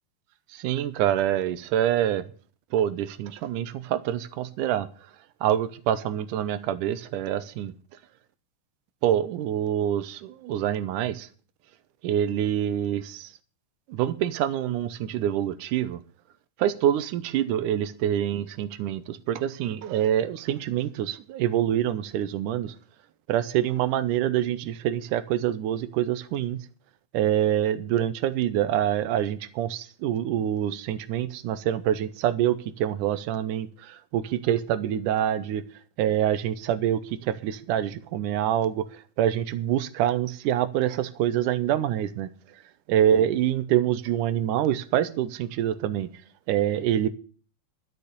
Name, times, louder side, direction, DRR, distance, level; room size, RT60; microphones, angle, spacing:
voice 1, 0.5-2.3 2.7-4.9 5.4-7.7 9.0-11.3 12.0-13.3 13.9-16.0 16.6-22.7 23.3-26.6 27.1-35.6 36.0-38.9 39.2-42.3 42.9-46.1 46.5-47.1, right 11 dB, 90° right, 2.3 m, -26 dB
11.5 x 6.8 x 8.1 m
omnidirectional pair, 3.5 m